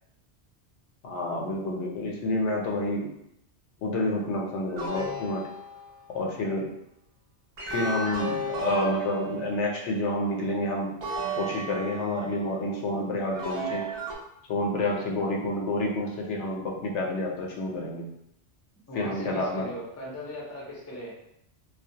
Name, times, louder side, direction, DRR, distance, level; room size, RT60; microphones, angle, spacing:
voice 1, 1.0-3.1 3.8-5.4 6.1-6.7 7.6-10.9 11.4-13.9 14.5-18.1 18.9-19.7, left 1 dB, 80° left, 0 dB, 0.9 m, -29 dB
sound 1, 4.8-6.2 7.6-9.9 11.0-12.4 13.3-14.1, right 2 dB, 55° right, 0.4 m, -33 dB
voice 2, 18.9-21.1, left 1 dB, 25° left, -4 dB, 0.4 m, -39 dB
2.2 x 2.0 x 2.7 m, 0.78 s
omnidirectional pair, 1.2 m